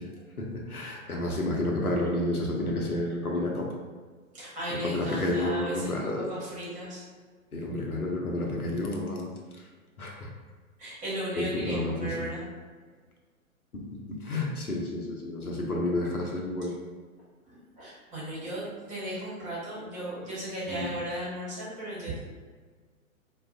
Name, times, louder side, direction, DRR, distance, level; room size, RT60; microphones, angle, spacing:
voice 1, 0.0-3.7 4.7-6.3 7.5-9.3 10.0-10.3 11.4-12.3 13.7-16.7 20.7-21.0, left 1 dB, 90° left, -1 dB, 0.8 m, -30 dB
voice 2, 4.3-7.0 10.8-12.4 17.5-22.2, right 1 dB, 15° right, -7 dB, 1.3 m, -36 dB
4.5 x 2.4 x 2.5 m, 1.5 s
figure-of-eight pair, 115°, 43 cm